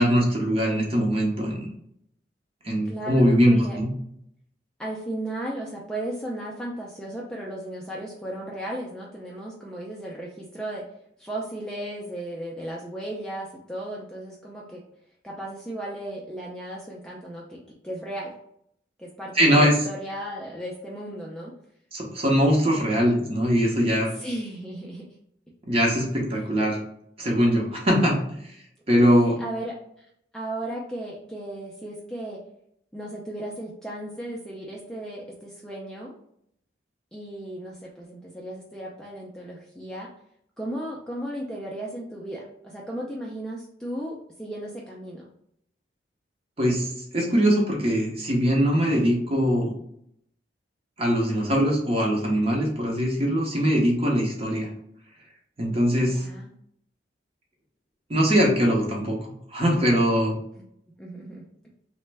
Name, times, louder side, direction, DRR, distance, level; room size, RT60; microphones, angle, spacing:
voice 1, 0.0-1.7 2.6-3.9 19.3-19.8 21.9-24.1 25.6-26.8 27.2-28.2 28.9-29.3 46.6-49.7 51.0-54.7 55.6-56.2 58.1-59.2 59.5-60.3, equal, 30° right, -1 dB, 0.7 m, -21 dB
voice 2, 2.9-3.8 4.8-10.8 11.2-14.8 15.2-17.6 17.8-18.3 19.0-21.5 24.1-25.0 29.0-29.7 30.3-32.4 32.9-36.1 37.1-40.1 40.6-45.3 56.0-56.5 60.6-60.7 61.0-61.4, right 1 dB, 5° left, -4 dB, 0.3 m, -35 dB
3.2 x 2.1 x 3.3 m, 0.72 s
head